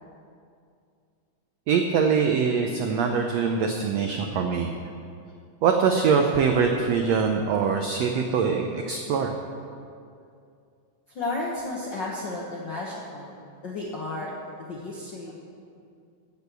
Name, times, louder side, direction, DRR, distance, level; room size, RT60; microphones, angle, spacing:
voice 1, 1.7-4.7 5.6-9.3, right 6 dB, 80° right, 3 dB, 1.5 m, -23 dB
voice 2, 11.1-15.3, left 2 dB, 65° left, -4 dB, 1.1 m, -33 dB
15.0 x 6.5 x 6.7 m, 2.4 s
omnidirectional pair, 3.9 m